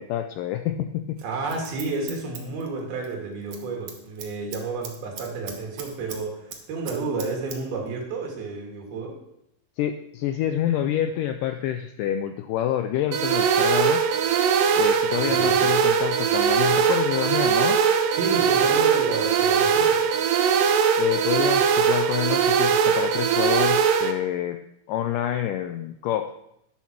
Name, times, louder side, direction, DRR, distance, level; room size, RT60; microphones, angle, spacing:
voice 1, 0.0-1.2 9.8-14.0 14.8-17.8 21.0-24.6 24.9-26.3, left 11 dB, 85° left, 8 dB, 1.9 m, -27 dB
Scissors, 1.2-3.1 3.4-3.6 3.9-6.2 6.5-7.6 7.9-8.0, right 7 dB, 60° right, 1.8 m, -39 dB
voice 2, 1.2-9.2 15.1-15.6 18.2-20.0, right 4 dB, 90° right, 0 dB, 3.7 m, -31 dB
sound 1, 13.1-24.1, right 7 dB, 75° right, 2.4 m, -21 dB
10.5 x 7.1 x 6.0 m, 0.79 s
omnidirectional pair, 4.3 m